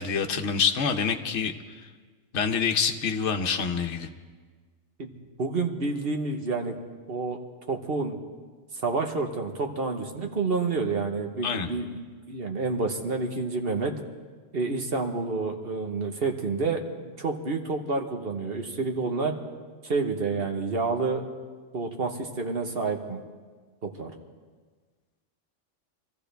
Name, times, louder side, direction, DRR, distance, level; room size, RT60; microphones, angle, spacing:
voice 1, 0.0-1.5 2.3-4.1 11.4-11.7, left 6 dB, 70° left, 4 dB, 1.2 m, -26 dB
voice 2, 5.4-6.7 7.1-7.4 7.7-8.2 8.8-13.9 14.5-16.8 17.2-19.3 19.8-21.2 21.7-23.2 23.8-24.1, right 4 dB, 50° right, 4 dB, 1.4 m, -29 dB
24.5 x 14.5 x 3.4 m, 1.5 s
omnidirectional pair, 1.3 m